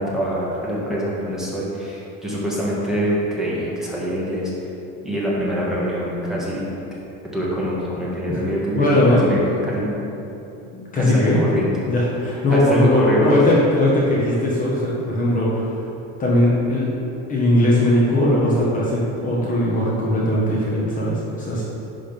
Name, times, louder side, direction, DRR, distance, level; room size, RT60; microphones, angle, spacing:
voice 1, 0.0-4.5 5.0-6.7 7.3-10.0 10.9-11.7 12.5-13.4, equal, ahead, -7 dB, 1.6 m, -25 dB
voice 2, 8.8-9.6 10.7-11.4 11.8-15.8 16.2-16.9 17.3-21.6, left 1 dB, 25° left, -6 dB, 1.4 m, -19 dB
10.5 x 3.8 x 5.3 m, 2.8 s
cardioid pair, 145°, 31 cm